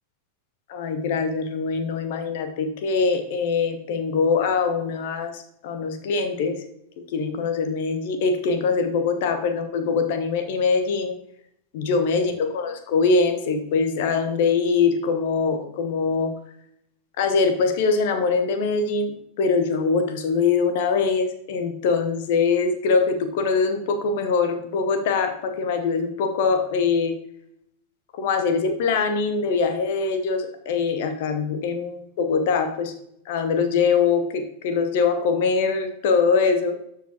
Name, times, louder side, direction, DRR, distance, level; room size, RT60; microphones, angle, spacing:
voice 1, 0.7-6.6 7.1-11.1 11.7-16.3 17.2-27.1 28.1-32.9 33.3-36.8, left 5 dB, 50° left, 8 dB, 0.9 m, -23 dB
12.5 x 5.0 x 2.9 m, 0.74 s
figure-of-eight pair, 90°, 0 cm